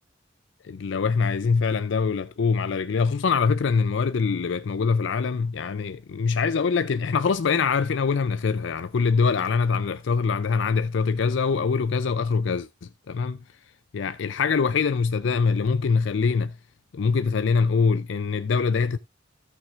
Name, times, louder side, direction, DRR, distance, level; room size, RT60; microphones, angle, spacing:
voice 1, 0.6-12.7 13.1-13.4 13.9-16.5 16.9-19.0, left 5 dB, 65° left, 0.4 m, -23 dB
16.5 x 5.9 x 2.5 m
head